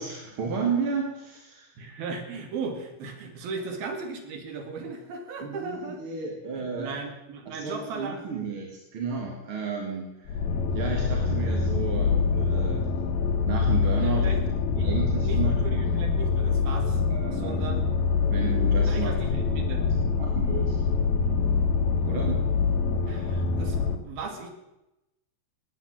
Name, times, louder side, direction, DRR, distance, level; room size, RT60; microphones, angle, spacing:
voice 1, 0.0-1.7 5.4-6.9 7.5-10.4 10.7-12.9 13.5-14.3 14.8-15.8 17.1-17.6 18.3-19.1 20.2-20.8 22.0-22.4, right 5 dB, 45° right, 0 dB, 2.2 m, -32 dB
voice 2, 1.8-6.0 6.6-8.5 14.0-14.4 14.8-14.9 15.2-17.0 17.3-17.9 18.9-19.9 23.1-24.5, right 4 dB, 85° right, 4 dB, 4.1 m, -37 dB
sound 1, 10.3-24.0, left 5 dB, 85° left, 3.1 m, -25 dB
19.0 x 9.4 x 7.5 m, 0.94 s
omnidirectional pair, 4.2 m